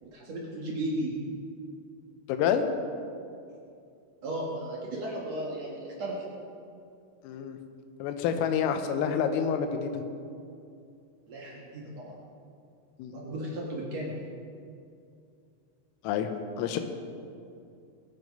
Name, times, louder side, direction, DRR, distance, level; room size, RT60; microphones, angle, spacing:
voice 1, 0.0-1.1 4.2-6.2 11.3-12.2 13.1-14.2, right 1 dB, 90° right, -4 dB, 1.4 m, -35 dB
voice 2, 2.3-2.7 7.2-7.6 8.0-10.0 13.0-13.1 16.0-16.8, left 7 dB, 80° left, 7 dB, 3.5 m, -28 dB
21.0 x 9.2 x 5.3 m, 2.5 s
omnidirectional pair, 6.0 m